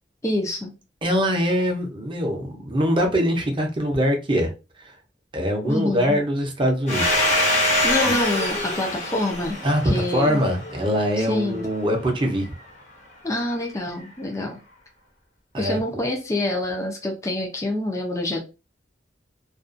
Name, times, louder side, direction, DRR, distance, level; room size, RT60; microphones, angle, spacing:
voice 1, 0.2-0.7 5.6-6.2 7.8-9.6 9.9-10.4 11.2-11.6 13.2-14.6 15.6-18.4, left 1 dB, 15° left, 0.4 m, -26 dB
voice 2, 1.0-4.5 4.8-4.9 5.3-7.3 8.0-8.2 9.6-12.5 15.5-15.8, equal, 30° right, 0.6 m, -23 dB
Domestic sounds home sounds, 6.9-11.3, left 1 dB, 40° left, 0.8 m, -24 dB
2.4 x 2.2 x 2.5 m
head